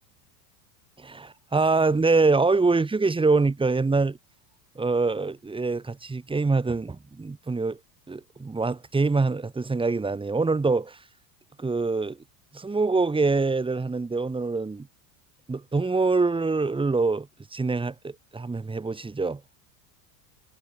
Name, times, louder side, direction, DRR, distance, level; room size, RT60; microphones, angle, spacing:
voice 1, 1.0-4.2 4.7-7.8 8.1-11.0 11.6-12.2 12.5-14.9 15.5-19.4, right 3 dB, 10° right, 3.4 m, -25 dB
supercardioid pair, 140°, 46 cm